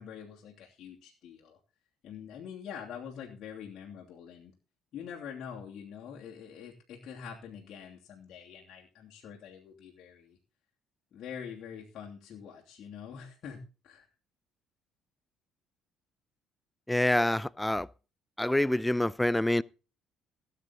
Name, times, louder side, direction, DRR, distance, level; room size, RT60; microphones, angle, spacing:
voice 1, 0.0-1.6 2.0-4.5 4.9-10.4 11.1-14.1, left 7 dB, 50° left, 3.0 m, -45 dB
voice 2, 16.9-17.9 18.4-19.6, left 1 dB, 10° left, 0.6 m, -26 dB
18.5 x 9.2 x 4.1 m
figure-of-eight pair, 50°, 0 cm